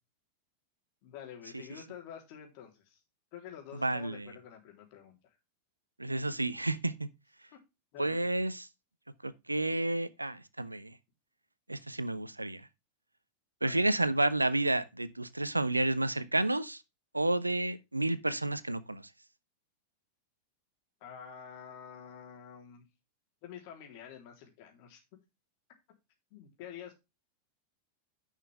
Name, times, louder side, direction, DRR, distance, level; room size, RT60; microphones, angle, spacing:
voice 1, 1.0-3.0 3.3-5.4 7.5-7.6 7.9-8.3 13.6-13.8 21.0-22.8 23.4-25.0 26.3-26.9, left 8 dB, 45° left, 3.4 m, -48 dB
voice 2, 3.7-4.3 6.0-7.1 8.0-8.7 9.2-11.0 11.7-12.7 13.6-16.8 17.1-19.1, right 2 dB, 85° right, 0.7 m, -31 dB
10.0 x 6.5 x 3.4 m
figure-of-eight pair, 90°, 0 cm